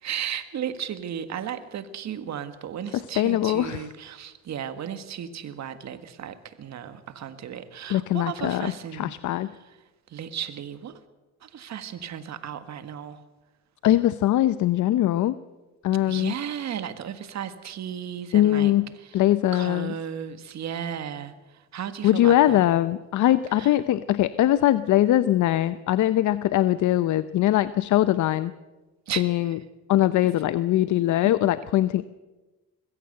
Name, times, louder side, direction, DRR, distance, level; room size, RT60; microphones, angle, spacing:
voice 1, 0.0-9.8 10.1-11.0 11.4-13.2 16.1-19.2 19.5-22.7 23.5-23.8 29.1-29.2, right 9 dB, 65° right, 10 dB, 1.7 m, -35 dB
voice 2, 2.9-3.8 7.9-9.5 13.8-15.4 15.8-16.3 18.3-18.9 19.1-19.9 22.0-28.5 29.2-29.6 29.9-32.0, left 13 dB, 75° left, 14 dB, 0.7 m, -21 dB
21.5 x 15.5 x 7.9 m, 1.2 s
cardioid pair, 90°, 30 cm